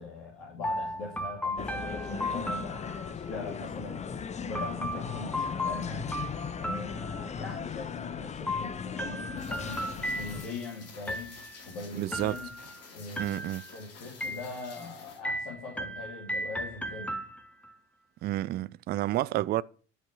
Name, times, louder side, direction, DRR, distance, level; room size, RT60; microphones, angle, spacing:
voice 1, 0.0-4.0 4.4-6.1 6.6-11.4 11.6-12.5 12.9-13.4 13.7-17.1, left 3 dB, 65° left, 3.0 m, -41 dB
sound 1, 0.6-3.4 4.5-7.6 8.5-10.7 11.1-11.7 12.1-12.8 13.2-13.8 14.2-14.9 15.2-17.7, equal, 5° left, 1.1 m, -36 dB
sound 2, 1.6-10.5, left 6 dB, 20° left, 0.6 m, -37 dB
Rain, 9.4-15.2, left 5 dB, 45° left, 2.9 m, -50 dB
voice 2, 11.9-12.4 13.2-13.6 18.2-19.6, right 15 dB, 30° right, 0.4 m, -30 dB
12.0 x 5.4 x 6.2 m
figure-of-eight pair, 60°, 34 cm